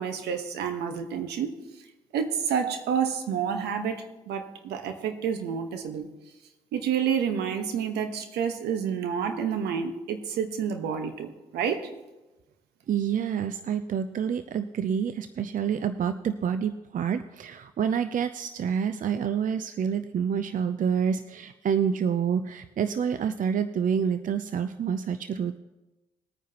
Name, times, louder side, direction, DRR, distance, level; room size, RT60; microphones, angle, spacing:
voice 1, 0.0-1.5 2.1-6.1 6.7-11.9, right 7 dB, 75° right, 7 dB, 1.3 m, -29 dB
voice 2, 12.9-25.6, right 7 dB, 50° right, 11 dB, 0.6 m, -28 dB
20.5 x 9.3 x 3.0 m, 1.1 s
hypercardioid pair, 50°, 17 cm